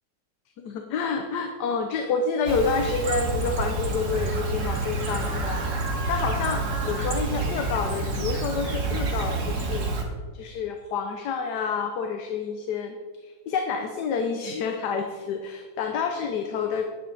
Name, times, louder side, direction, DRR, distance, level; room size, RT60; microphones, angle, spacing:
voice 1, 0.6-5.8 6.1-9.9 10.3-16.9, left 5 dB, 70° left, 5 dB, 1.3 m, -28 dB
Chirp tweet, 2.5-10.0, right 3 dB, 45° right, 1.6 m, -28 dB
10.0 x 9.5 x 3.9 m, 1.4 s
omnidirectional pair, 1.9 m